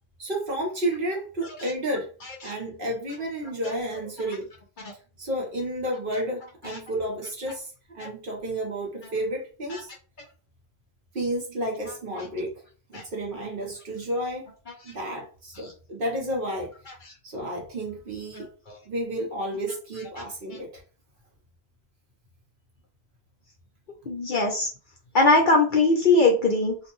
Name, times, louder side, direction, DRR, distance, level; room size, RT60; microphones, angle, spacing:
voice 1, 0.2-2.1 2.4-4.5 5.2-9.9 11.1-12.6 12.9-14.4 14.8-16.7 17.2-18.5 18.9-20.8, right 1 dB, 55° right, 0 dB, 1.0 m, -31 dB
voice 2, 18.4-18.8 20.2-20.3 24.1-24.7 25.1-26.8, left 3 dB, 55° left, 0 dB, 0.6 m, -21 dB
2.6 x 2.1 x 2.9 m, 0.37 s
omnidirectional pair, 1.1 m